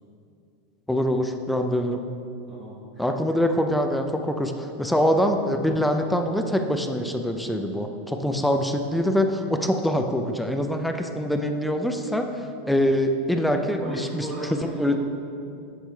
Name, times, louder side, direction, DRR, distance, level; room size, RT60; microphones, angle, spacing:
voice 1, 0.9-2.1 3.0-15.0, equal, 5° left, 5 dB, 0.4 m, -24 dB
voice 2, 2.5-3.0 13.8-15.0, equal, 20° right, -9 dB, 1.4 m, -36 dB
7.4 x 7.0 x 2.3 m, 2.5 s
hypercardioid pair, 90°, 0 cm